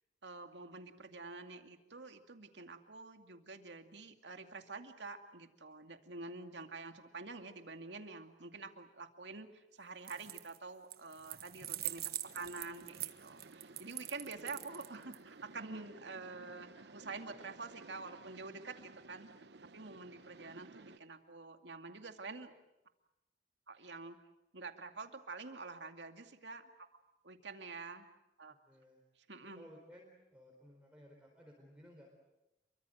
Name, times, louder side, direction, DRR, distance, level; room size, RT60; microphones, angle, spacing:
voice 1, 0.2-19.5 19.7-22.5 23.7-24.2 24.5-26.7 27.2-28.1 28.4-28.5 29.3-29.7, right 3 dB, 90° right, 6 dB, 2.4 m, -48 dB
sound 1, 10.0-10.6 10.9-15.2, right 14 dB, 55° right, 1.4 m, -43 dB
sound 2, 12.2-21.0, right 3 dB, 75° right, 1.0 m, -56 dB
voice 2, 28.7-29.0 29.4-32.1, equal, 5° right, -2 dB, 4.4 m, -58 dB
29.5 x 24.0 x 7.9 m, 0.93 s
head